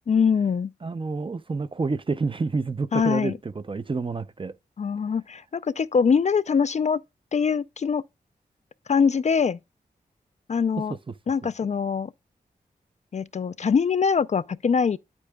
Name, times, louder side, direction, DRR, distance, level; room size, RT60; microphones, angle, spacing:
voice 1, 0.1-0.7 2.9-3.4 4.8-7.0 7.3-8.0 8.9-9.6 10.5-10.9 11.3-12.1 13.1-15.0, left 6 dB, 45° left, 0.4 m, -23 dB
voice 2, 0.8-4.6 10.9-11.1, right 4 dB, 30° right, 0.5 m, -29 dB
8.6 x 8.3 x 2.2 m
cardioid pair, 40°, 17 cm